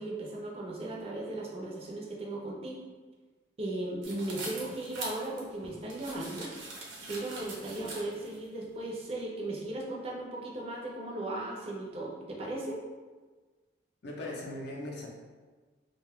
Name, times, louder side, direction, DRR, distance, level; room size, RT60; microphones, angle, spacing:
voice 1, 0.0-2.8 3.6-6.5 7.1-12.8, right 2 dB, 30° right, -3 dB, 0.4 m, -37 dB
sound 1, 4.0-8.4, right 2 dB, 85° right, 0.7 m, -42 dB
voice 2, 14.0-15.1, left 1 dB, 60° left, -2 dB, 0.5 m, -39 dB
2.5 x 2.2 x 3.4 m, 1.4 s
head